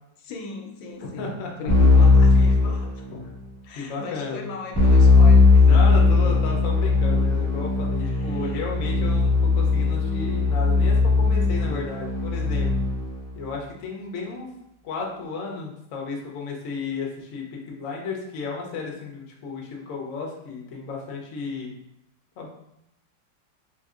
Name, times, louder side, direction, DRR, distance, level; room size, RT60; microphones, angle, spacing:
voice 1, 0.2-3.0 3.6-6.1 8.0-8.7, left 4 dB, 90° left, 2 dB, 1.3 m, -38 dB
voice 2, 1.0-1.5 3.7-4.5 5.7-12.7 13.3-14.5 14.8-21.7 22.4-22.5, left 4 dB, 65° left, -1 dB, 0.8 m, -33 dB
Keyboard (musical), 1.7-3.4 4.7-13.1, left 3 dB, 10° left, 1.3 m, -18 dB
3.6 x 2.6 x 2.4 m, 0.80 s
omnidirectional pair, 2.0 m